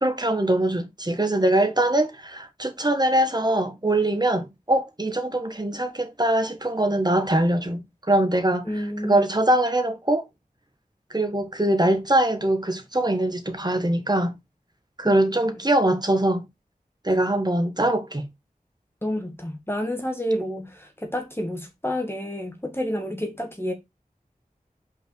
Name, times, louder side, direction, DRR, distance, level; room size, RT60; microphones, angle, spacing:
voice 1, 0.0-8.6 9.0-10.3 11.1-14.4 15.0-16.4 17.0-18.2, right 1 dB, 25° right, 1.5 m, -22 dB
voice 2, 8.7-9.2 15.0-15.6 19.0-23.7, equal, 15° left, 1.7 m, -29 dB
5.5 x 4.6 x 4.5 m
wide cardioid pair, 45°, 15 cm